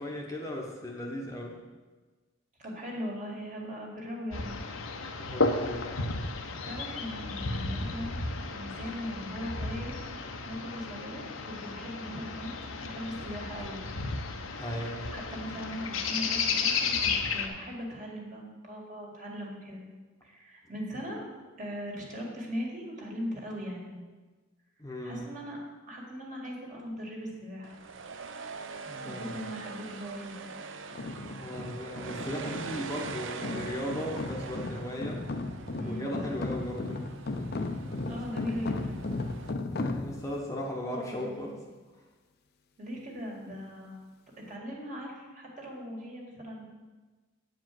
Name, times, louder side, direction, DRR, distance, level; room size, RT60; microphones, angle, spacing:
voice 1, 0.0-1.6 5.2-5.9 14.6-15.1 24.8-25.3 28.9-29.4 31.3-35.2 35.8-37.0 38.0-38.2 39.4-41.6, equal, 15° left, -2 dB, 1.0 m, -37 dB
voice 2, 2.6-4.6 6.6-8.2 8.5-9.9 10.4-13.8 15.1-19.8 20.2-21.2 21.6-23.9 25.0-25.6 25.9-27.8 29.0-30.5 35.4-36.2 38.0-39.0 42.8-44.0 44.4-46.6, equal, 40° right, -2 dB, 2.1 m, -39 dB
sound 1, 4.3-17.5, left 4 dB, 80° left, 0.9 m, -33 dB
sound 2, 27.6-39.5, right 4 dB, 65° right, 0.6 m, -43 dB
sound 3, 30.9-40.4, left 2 dB, 50° left, 0.6 m, -36 dB
8.8 x 4.9 x 7.6 m, 1.3 s
head